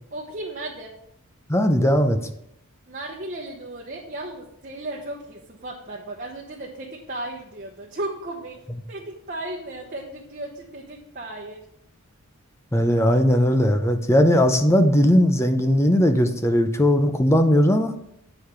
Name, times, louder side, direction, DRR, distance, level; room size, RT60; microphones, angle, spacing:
voice 1, 0.1-0.9 2.9-8.6 8.9-11.6, right 1 dB, 40° right, -2 dB, 1.0 m, -35 dB
voice 2, 1.5-2.2 12.7-17.9, equal, 10° left, 7 dB, 0.6 m, -18 dB
8.6 x 4.9 x 5.8 m, 0.76 s
head